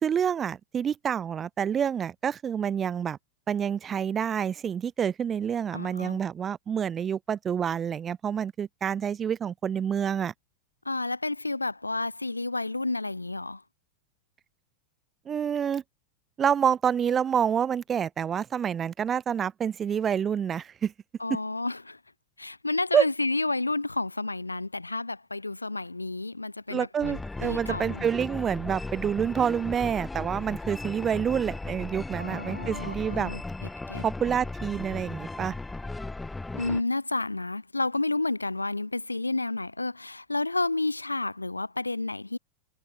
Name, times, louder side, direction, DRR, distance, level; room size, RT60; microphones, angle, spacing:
voice 1, 0.0-3.2 3.5-10.3 15.3-15.8 16.4-20.9 22.9-23.0 26.7-33.3 34.0-35.6, right 8 dB, 25° right, 0.6 m, -28 dB
voice 2, 5.7-6.2 10.8-13.6 21.2-22.0 22.4-28.0 32.2-33.4 33.9-34.0 36.5-42.4, left 2 dB, 85° left, 0.6 m, -30 dB
sound 1, 27.0-36.8, left 2 dB, 10° left, 2.9 m, -36 dB
figure-of-eight pair, 90°, 0 cm